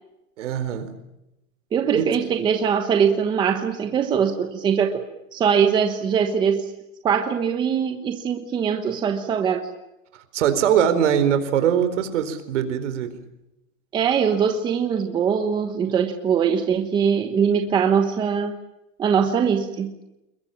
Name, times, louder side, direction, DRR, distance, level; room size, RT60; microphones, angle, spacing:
voice 1, 0.4-0.9 1.9-2.1 10.1-13.1, right 9 dB, 60° right, 10 dB, 4.5 m, -22 dB
voice 2, 1.7-5.0 5.3-6.7 7.0-9.7 13.9-18.5 19.0-19.9, right 7 dB, 10° right, 6 dB, 1.1 m, -22 dB
28.5 x 22.0 x 7.5 m, 0.90 s
supercardioid pair, 170°, 41 cm